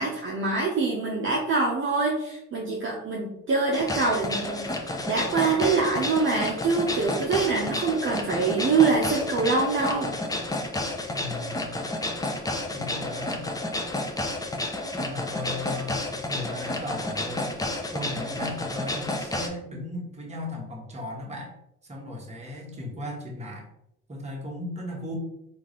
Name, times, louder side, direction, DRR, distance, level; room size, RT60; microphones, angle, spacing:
voice 1, 0.0-4.7 5.1-10.1, right 4 dB, 40° right, -2 dB, 0.8 m, -24 dB
sound 1, 3.7-19.5, left 2 dB, 10° left, 0.5 m, -31 dB
voice 2, 11.2-11.8 12.7-13.4 14.9-17.6 17.9-21.5 21.8-23.6 24.1-25.2, left 1 dB, 20° right, -2 dB, 1.3 m, -36 dB
3.6 x 2.5 x 3.0 m, 0.81 s
supercardioid pair, 70°, 30 cm